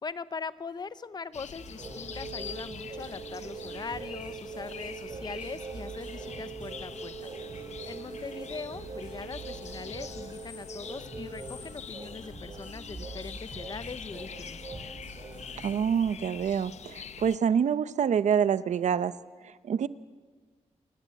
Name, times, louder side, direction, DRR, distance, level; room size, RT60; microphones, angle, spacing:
voice 1, 0.0-7.3 7.9-14.6, left 5 dB, 35° left, 15 dB, 0.8 m, -41 dB
sound 1, 1.3-17.4, left 7 dB, 65° left, 0.9 m, -45 dB
sound 2, 1.5-15.7, right 4 dB, 40° right, 7.0 m, -42 dB
voice 2, 15.6-19.1 19.4-19.9, right 7 dB, 75° right, 15 dB, 0.8 m, -26 dB
29.0 x 20.0 x 8.4 m, 1.5 s
wide cardioid pair, 165°, 12 cm